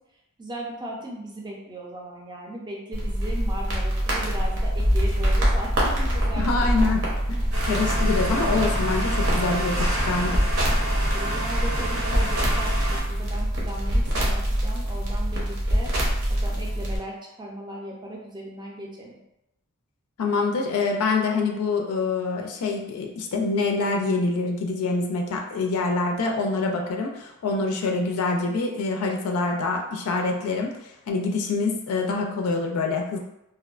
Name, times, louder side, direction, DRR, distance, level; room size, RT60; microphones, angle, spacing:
voice 1, 0.4-6.5 10.8-15.9 16.3-19.2, right 1 dB, 20° right, -2 dB, 0.5 m, -37 dB
sound 1, 2.9-17.0, equal, 65° right, 0.7 m, -24 dB
voice 2, 6.4-10.4 20.2-33.2, left 3 dB, 70° left, 2 dB, 0.3 m, -26 dB
sound 2, 7.5-13.0, right 1 dB, 85° right, 1.1 m, -30 dB
2.5 x 2.1 x 2.3 m, 0.86 s
head